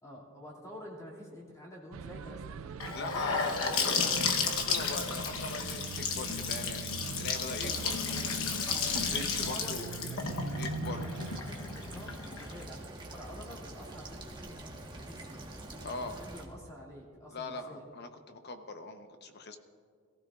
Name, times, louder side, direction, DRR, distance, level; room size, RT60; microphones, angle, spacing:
voice 1, 0.0-4.2 9.4-10.2 10.9-17.9, equal, 15° left, -4 dB, 2.5 m, -49 dB
sound 1, 1.9-11.4, right 5 dB, 85° right, 0.4 m, -42 dB
Gurgling / Sink (filling or washing) / Bathtub (filling or washing), 2.8-12.6, left 5 dB, 90° left, 1.1 m, -33 dB
voice 2, 2.9-3.6 4.0-8.0 8.9-9.9 10.6-11.0 15.8-16.2 17.3-19.6, left 3 dB, 55° left, 7 dB, 0.9 m, -41 dB
sound 2, 11.1-16.4, right 1 dB, 25° right, 1.4 m, -46 dB
22.0 x 15.0 x 2.5 m, 2.1 s
head